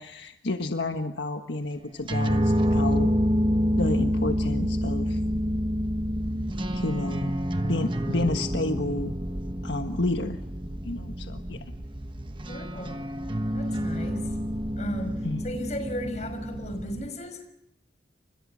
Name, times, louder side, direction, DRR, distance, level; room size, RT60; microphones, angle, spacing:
voice 1, 0.0-3.1 3.8-5.2 6.7-7.3 7.7-9.1 9.6-10.4 10.8-11.6 15.2-15.5, left 2 dB, 75° left, 1.5 m, -30 dB
sound 1, 1.9-17.1, equal, 25° right, 1.1 m, -28 dB
voice 2, 12.5-13.0 13.5-14.3 14.8-17.5, equal, 40° left, 5.7 m, -36 dB
30.0 x 26.0 x 6.4 m
head